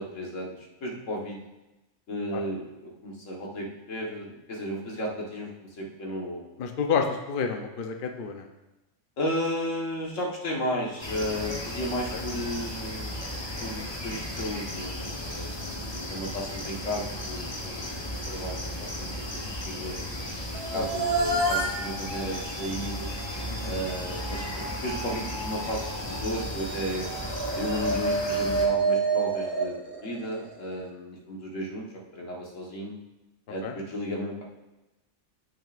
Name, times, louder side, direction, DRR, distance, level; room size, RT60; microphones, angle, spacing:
voice 1, 0.0-1.4 2.1-6.6 9.2-13.2 13.6-20.0 20.7-23.1 23.6-27.1 27.5-31.9 32.1-33.0 33.5-34.4, equal, 85° left, -1 dB, 1.8 m, -34 dB
voice 2, 6.6-8.5 12.1-12.2 20.7-20.9 23.5-23.8 33.6-33.7, left 6 dB, 50° left, 4 dB, 0.8 m, -29 dB
sound 1, 11.0-28.7, left 1 dB, 25° left, 1.0 m, -35 dB
sound 2, 20.5-30.7, right 3 dB, 45° right, 1.5 m, -30 dB
14.0 x 6.3 x 2.5 m, 1.0 s
omnidirectional pair, 1.3 m